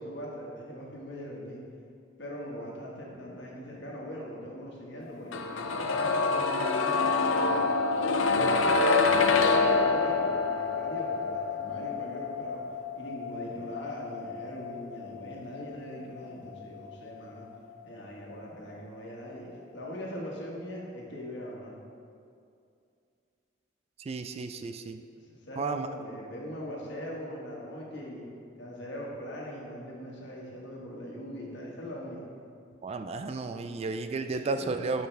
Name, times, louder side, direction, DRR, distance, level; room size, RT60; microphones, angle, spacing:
voice 1, 0.0-1.6 2.2-7.7 9.0-12.6 12.9-17.5 17.8-21.8 25.1-28.2 28.6-32.2 34.3-34.7, equal, 65° left, -3 dB, 1.6 m, -41 dB
sound 1, 5.3-17.1 17.4-17.5, left 4 dB, 85° left, 0.5 m, -27 dB
voice 2, 8.4-8.7 24.0-25.0 25.6-25.9 32.8-35.1, right 3 dB, 30° right, 8 dB, 0.3 m, -33 dB
12.0 x 5.5 x 3.4 m, 2.4 s
head